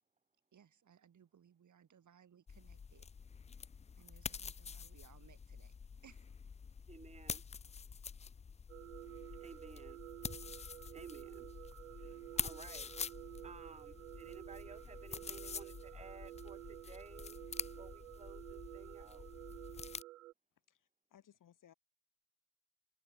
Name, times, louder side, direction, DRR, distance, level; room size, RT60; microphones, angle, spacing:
voice 1, 0.5-3.1 3.9-5.8 6.0-6.3, right 8 dB, 45° right, 4.6 m, -64 dB
sound 1, 2.5-20.0, left 6 dB, 15° left, 0.5 m, -47 dB
voice 2, 6.9-7.4 9.2-10.0 10.5-11.5 11.9-12.9 13.4-17.4 17.8-19.3, right 4 dB, 15° right, 1.4 m, -56 dB
sound 2, 8.7-20.3, right 16 dB, 75° right, 1.2 m, -51 dB
voice 3, 20.7-21.7, left 10 dB, 50° left, 3.7 m, -64 dB
figure-of-eight pair, 40°, 40 cm